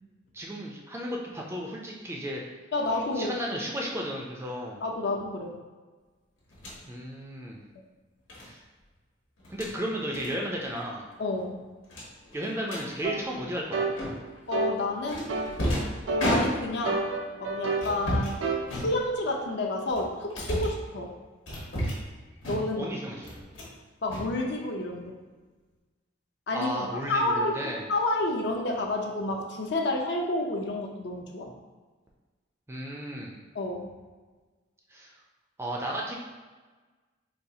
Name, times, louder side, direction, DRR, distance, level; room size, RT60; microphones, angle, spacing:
voice 1, 0.3-2.4 3.2-4.8 6.8-7.6 8.4-8.6 9.5-11.1 12.3-13.9 22.8-23.4 26.5-27.8 32.7-33.4 34.9-35.1 35.6-36.1, equal, 15° right, -2 dB, 0.3 m, -34 dB
voice 2, 2.7-3.4 4.8-5.6 11.2-11.7 14.5-15.3 16.2-17.1 17.3-18.4 18.7-21.2 22.5-22.9 24.0-25.2 26.5-27.5 27.9-31.5 33.5-33.9, left 2 dB, 60° left, 1 dB, 0.5 m, -30 dB
sound 1, 6.5-6.8 8.3-8.5 9.4-9.7 10.1-10.3 10.6-10.8 11.1-11.2 11.9-12.9 14.0-14.4 15.1-16.9 17.8-18.4 18.7-19.4 19.9-20.8 21.5-22.1 22.4-22.9 23.2-23.8 24.1-24.9, equal, 90° left, 1.0 m, -32 dB
sound 2, 13.0-13.2 13.7-14.0 14.5-14.8 15.3-15.6 16.1-16.3 16.9-17.9 18.4-18.7, right 3 dB, 80° right, 0.4 m, -29 dB
4.1 x 2.3 x 2.7 m, 1.3 s
head